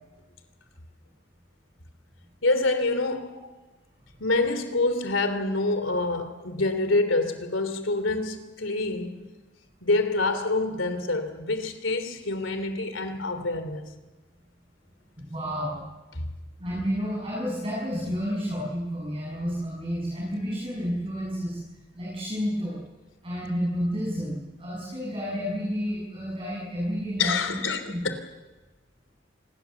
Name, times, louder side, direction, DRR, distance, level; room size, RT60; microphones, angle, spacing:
voice 1, 2.4-3.4 4.2-9.3 9.8-14.0 27.2-28.2, left 2 dB, 80° left, 3.1 m, -26 dB
voice 2, 15.2-15.9 16.6-21.6 21.9-22.8 23.2-28.1, equal, 30° right, 8.0 m, -30 dB
27.0 x 21.0 x 7.1 m
head